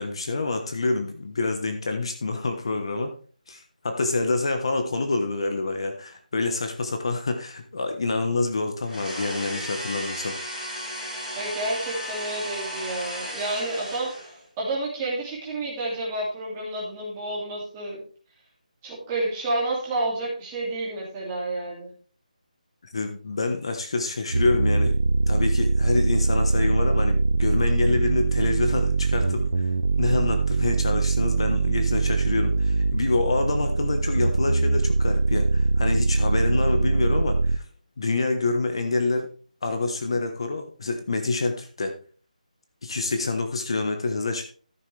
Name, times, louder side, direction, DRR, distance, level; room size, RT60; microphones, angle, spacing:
voice 1, 0.0-3.1 3.5-10.3 22.9-25.0 25.3-29.7 30.0-37.6 38.0-39.3 39.6-41.9 42.8-44.4, left 3 dB, 40° left, 5 dB, 1.2 m, -27 dB
sound 1, 8.8-14.4, equal, 5° left, 4.6 m, -35 dB
voice 2, 11.3-14.3 14.6-18.0 18.8-21.9, right 2 dB, 10° right, -5 dB, 2.5 m, -30 dB
sound 2, 24.3-37.6, right 3 dB, 80° right, 0.7 m, -22 dB
13.5 x 7.4 x 3.4 m, 0.40 s
figure-of-eight pair, 175°, 4 cm